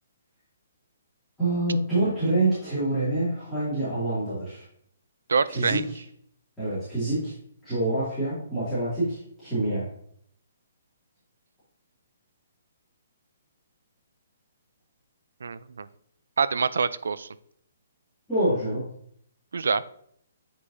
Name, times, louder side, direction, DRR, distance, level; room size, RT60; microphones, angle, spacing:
voice 1, 1.4-4.6 5.5-6.0 6.6-7.3 7.6-9.9 18.3-18.8, right 2 dB, ahead, -17 dB, 2.5 m, -26 dB
voice 2, 5.3-5.8 15.4-15.9 16.4-17.3 19.5-19.8, right 5 dB, 90° right, 16 dB, 0.4 m, -25 dB
8.4 x 4.8 x 2.7 m, 0.67 s
hypercardioid pair, 175°, 0 cm